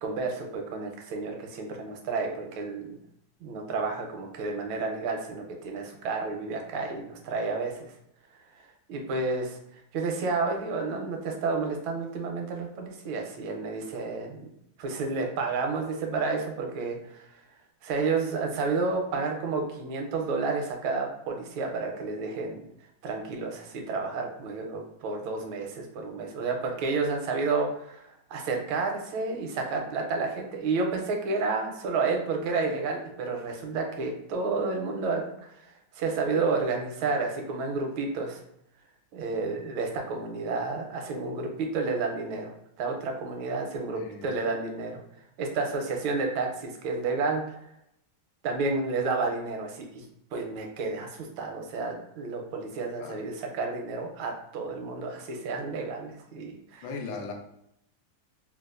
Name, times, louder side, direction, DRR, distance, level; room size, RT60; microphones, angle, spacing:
voice 1, 0.0-3.0 3.4-7.9 8.9-9.6 9.9-14.5 14.8-17.3 17.8-22.6 23.0-38.4 39.1-42.5 42.8-45.0 45.4-47.6 48.4-50.0 50.3-56.9, right 4 dB, 80° right, 2 dB, 1.4 m, -31 dB
voice 2, 43.9-44.3 53.0-53.2 56.8-57.3, left 4 dB, 75° left, 2 dB, 1.3 m, -37 dB
3.9 x 2.3 x 2.4 m, 0.76 s
omnidirectional pair, 2.2 m